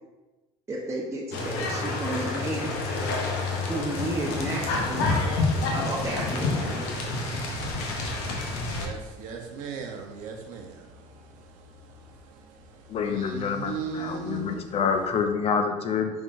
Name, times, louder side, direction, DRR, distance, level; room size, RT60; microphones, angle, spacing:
voice 1, 0.7-2.7 3.7-5.0 5.7-6.9, right 1 dB, 20° right, -4 dB, 0.9 m, -32 dB
sound 1, 1.3-8.9, left 3 dB, 85° left, 0.8 m, -28 dB
voice 2, 7.4-14.8, right 5 dB, 75° right, 3 dB, 0.7 m, -39 dB
voice 3, 12.9-16.1, left 6 dB, 50° left, 6 dB, 0.6 m, -27 dB
5.2 x 3.5 x 2.5 m, 1.1 s
supercardioid pair, 80°, 13 cm